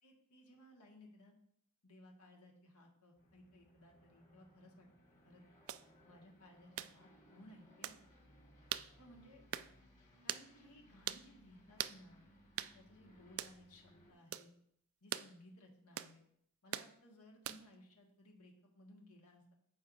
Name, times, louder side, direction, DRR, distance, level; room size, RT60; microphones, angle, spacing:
voice 1, 0.0-1.4 1.8-4.9 5.2-5.4 6.0-8.1 9.0-9.5 10.2-12.3 12.7-14.5 15.0-16.2 16.6-19.5, left 1 dB, 85° left, 0 dB, 1.7 m, -61 dB
Aircraft, 3.2-14.1, equal, 35° left, 1.8 m, -66 dB
sound 1, 5.7-5.8 6.8-6.9 7.8-8.0 8.7-8.9 9.5-9.7 10.3-10.5 11.1-11.2 11.8-12.0 12.6-12.7 13.4-13.6 14.3-14.5 15.1-15.3 16.0-16.1 16.7-16.9 17.4-17.7, right 12 dB, 65° right, 0.3 m, -41 dB
13.5 x 4.7 x 2.7 m, 0.70 s
head